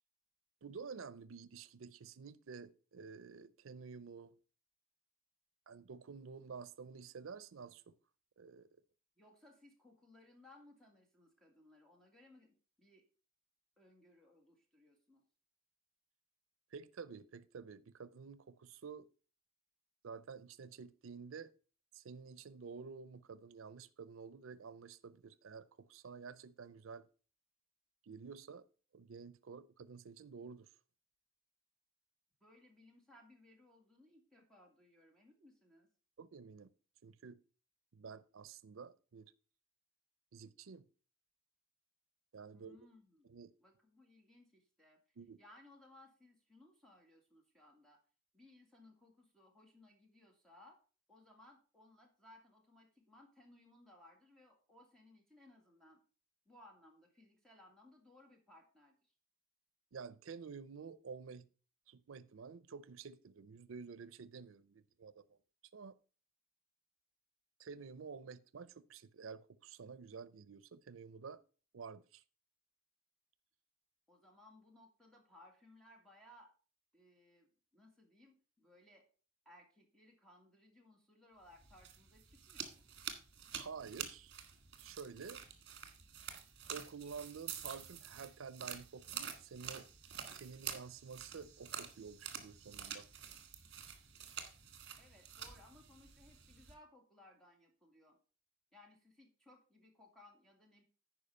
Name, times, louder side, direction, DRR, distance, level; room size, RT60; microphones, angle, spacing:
voice 1, 0.6-4.3 5.7-7.9 8.4-8.7 16.7-19.1 20.0-21.5 21.9-27.1 28.0-28.7 28.9-30.7 36.2-36.7 37.0-37.4 37.9-39.3 40.3-40.8 42.3-42.8 43.3-43.5 45.2-45.4 59.9-61.5 61.9-65.3 65.7-65.9 67.6-71.4 71.7-72.2 83.5-84.3 84.8-85.4 86.7-89.9 90.3-93.1, right 5 dB, 85° right, 0.5 m, -50 dB
voice 2, 9.2-13.0 13.8-15.2 32.4-35.9 42.5-43.3 43.6-45.0 45.4-48.0 48.3-50.8 51.1-56.0 56.5-59.1 74.1-76.5 76.9-79.1 79.5-82.9 95.0-98.2 98.7-100.8, left 1 dB, ahead, 2.0 m, -63 dB
sound 1, 81.5-96.7, right 8 dB, 55° right, 1.5 m, -48 dB
10.0 x 4.9 x 5.4 m
head